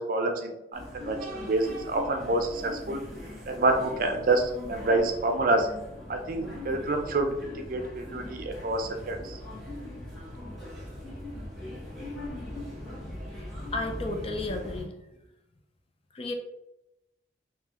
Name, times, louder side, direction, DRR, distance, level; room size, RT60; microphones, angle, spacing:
voice 1, 0.0-3.0 3.5-5.7 6.1-9.4, right 2 dB, 50° right, 5 dB, 0.5 m, -27 dB
sound 1, 0.7-14.8, left 1 dB, ahead, 1.1 m, -40 dB
voice 2, 13.7-15.0 16.1-16.3, left 2 dB, 30° left, 3 dB, 0.4 m, -33 dB
3.8 x 2.8 x 3.0 m, 0.90 s
head